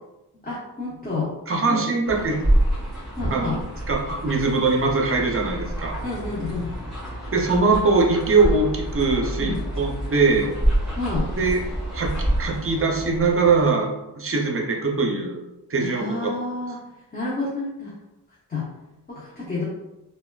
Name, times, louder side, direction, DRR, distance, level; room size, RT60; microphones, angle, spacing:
voice 1, 0.4-1.3 1.7-1.8 3.1-3.6 6.0-6.7 9.4-9.6 11.0-11.3 15.8-16.8 17.1-17.9 18.5-18.7 19.1-19.6, left 3 dB, 20° left, -7 dB, 0.7 m, -29 dB
voice 2, 1.5-2.5 3.3-3.6 3.9-5.9 7.3-10.5 11.3-11.6 11.9-13.9 14.2-15.4 15.7-16.3, right 3 dB, 35° right, 0 dB, 0.6 m, -22 dB
sound 1, 2.0-13.7, right 1 dB, ahead, 1.4 m, -27 dB
3.3 x 2.3 x 2.3 m, 0.98 s
wide cardioid pair, 95°, 41 cm